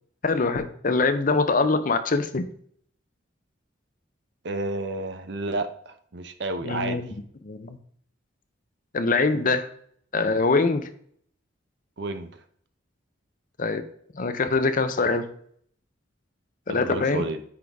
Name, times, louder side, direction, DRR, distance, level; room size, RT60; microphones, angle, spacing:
voice 1, 0.2-2.4 6.6-7.1 7.4-7.8 8.9-9.7 10.1-10.8 13.6-13.8 14.1-15.3 16.7-17.2, left 3 dB, 45° left, 10 dB, 0.7 m, -23 dB
voice 2, 4.4-7.0 12.0-12.3 16.7-17.4, right 2 dB, 65° right, 9 dB, 0.8 m, -31 dB
9.5 x 4.0 x 3.5 m, 0.62 s
head